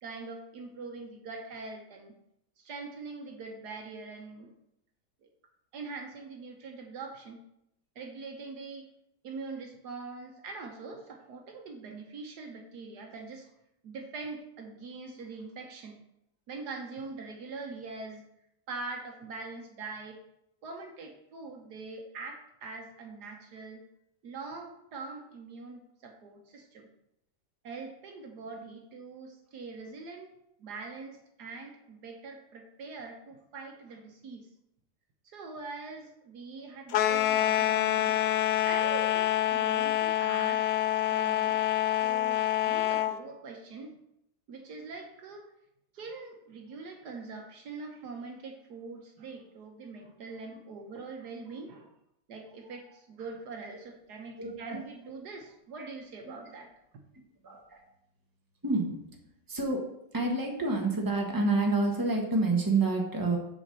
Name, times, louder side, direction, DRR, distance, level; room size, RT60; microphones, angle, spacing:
voice 1, 0.0-2.1 2.6-4.5 5.2-5.3 5.7-7.4 7.9-8.9 9.2-13.5 13.8-16.0 16.5-18.2 18.7-20.2 20.6-23.8 24.2-26.9 27.6-34.5 35.2-38.2 38.6-40.7 41.1-41.6 42.0-44.0 44.5-45.5 45.9-51.9 52.3-56.7, right 4 dB, 70° right, 3 dB, 1.5 m, -43 dB
sound 1, 36.9-43.1, left 12 dB, 80° left, 1.2 m, -27 dB
voice 2, 54.4-54.8 55.8-55.9 56.2-56.4 57.4-57.8 58.6-59.0 59.5-59.8 60.1-63.4, right 3 dB, 15° right, 1 dB, 1.4 m, -28 dB
7.2 x 5.1 x 6.7 m, 0.80 s
omnidirectional pair, 1.8 m